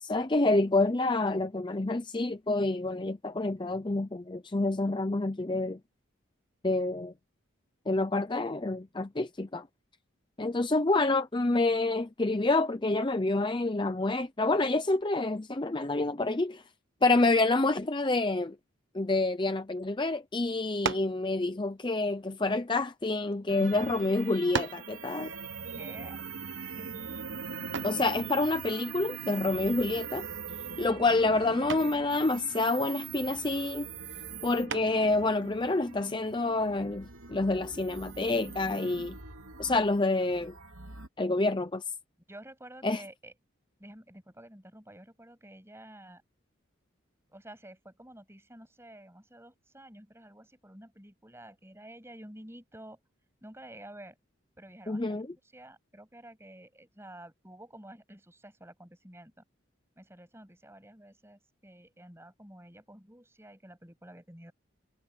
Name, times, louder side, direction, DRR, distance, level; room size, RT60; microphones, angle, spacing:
voice 1, 0.0-5.8 6.6-7.1 7.9-9.7 10.4-16.6 17.0-18.5 18.9-25.3 27.8-30.3 30.8-33.9 34.4-39.2 39.6-40.5 41.2-41.8 42.8-43.0 54.9-55.3, left 2 dB, 20° left, 0.6 m, -28 dB
sound 1, 20.8-21.2 22.2-23.3 24.0-24.1 24.5-24.9 27.7-28.1 30.0-30.4 30.7-31.1 31.7-32.0 34.7-35.1, right 5 dB, 60° right, 1.0 m, -35 dB
sound 2, 23.5-41.1, right 5 dB, 90° right, 3.0 m, -42 dB
voice 2, 25.7-26.2 26.7-27.1 42.3-43.3 43.8-46.2 47.3-53.0 53.4-54.2 54.6-55.3 55.5-59.4 60.0-64.5, right 1 dB, 10° right, 7.5 m, -50 dB
head